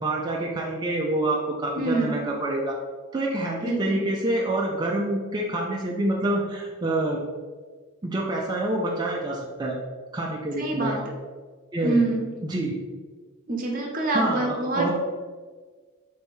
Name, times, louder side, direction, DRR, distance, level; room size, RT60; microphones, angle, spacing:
voice 1, 0.0-2.7 3.1-7.2 8.0-9.8 10.1-11.0 11.7-12.0 12.4-12.7 14.1-14.9, right 1 dB, 20° right, -2 dB, 0.3 m, -27 dB
voice 2, 1.7-2.2 3.6-4.0 10.6-11.0 11.8-12.2 13.5-14.9, right 2 dB, 40° right, 0 dB, 0.7 m, -25 dB
3.4 x 2.7 x 4.3 m, 1.5 s
head